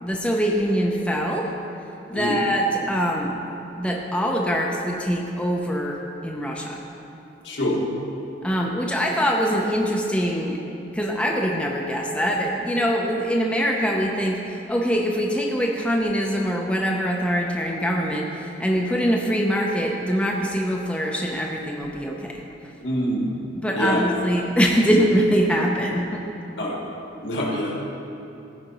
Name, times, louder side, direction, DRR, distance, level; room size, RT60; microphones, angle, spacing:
voice 1, 0.0-1.5 2.1-3.4 3.8-6.8 8.4-10.6 10.9-22.4 23.6-26.2, equal, 5° left, -1 dB, 0.5 m, -23 dB
voice 2, 2.1-2.4 7.4-7.8 22.8-23.4 23.7-24.0 26.6-26.8 27.2-27.9, equal, 75° left, -3 dB, 1.7 m, -25 dB
15.0 x 5.0 x 3.0 m, 2.8 s
head